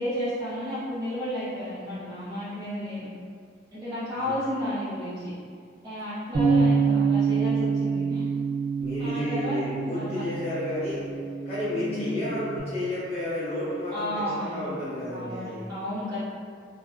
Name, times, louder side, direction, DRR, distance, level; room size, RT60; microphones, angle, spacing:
voice 1, 0.0-3.1 3.7-5.3 5.8-8.2 9.0-10.2 11.7-12.1 13.9-14.7 15.1-16.3, left 1 dB, 20° right, -15 dB, 0.5 m, -32 dB
Bass guitar, 6.3-12.6, right 5 dB, 75° right, 0.5 m, -26 dB
voice 2, 8.8-11.1 11.5-15.7, left 1 dB, 35° left, -10 dB, 0.5 m, -31 dB
2.6 x 2.1 x 2.3 m, 2.1 s
head